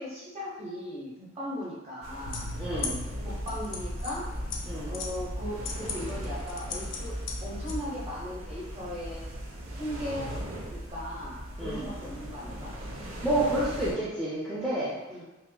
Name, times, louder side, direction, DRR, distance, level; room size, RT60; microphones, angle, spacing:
voice 1, 0.0-2.5 3.4-4.3 4.9-7.1 7.4-9.3 9.7-10.3 10.7-12.7 15.1-15.2, left 1 dB, 30° right, -6 dB, 1.0 m, -38 dB
sound 1, 2.0-13.9, right 1 dB, 85° right, 0.7 m, -40 dB
sound 2, 2.3-7.8, left 2 dB, 65° left, 0.5 m, -36 dB
voice 2, 2.6-3.0 4.7-4.9 11.6-11.9 13.2-14.9, right 1 dB, ahead, -9 dB, 0.5 m, -29 dB
5.4 x 2.0 x 2.2 m, 1.1 s
head